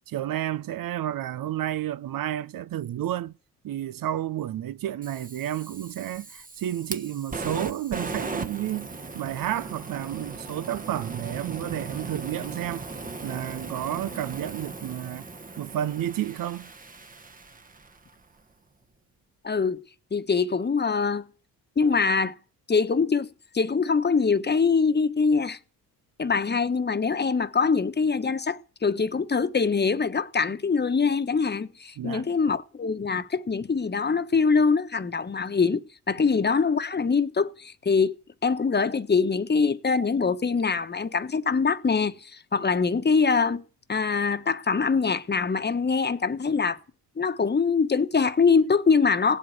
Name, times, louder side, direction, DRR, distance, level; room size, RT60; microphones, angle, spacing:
voice 1, 0.1-3.3 3.6-8.9 9.1-12.9 13.2-15.3 15.6-16.7 32.0-32.3, right 12 dB, 60° right, 0.8 m, -31 dB
Fire, 5.0-18.1, right 3 dB, 20° right, 1.3 m, -38 dB
voice 2, 19.4-19.8 20.1-21.2 21.8-22.3 22.7-23.3 23.5-25.6 26.2-38.1 38.4-43.6 43.9-46.8 47.2-49.4, left 5 dB, 25° left, 1.3 m, -23 dB
17.5 x 8.2 x 9.6 m
cardioid pair, 80°, 39 cm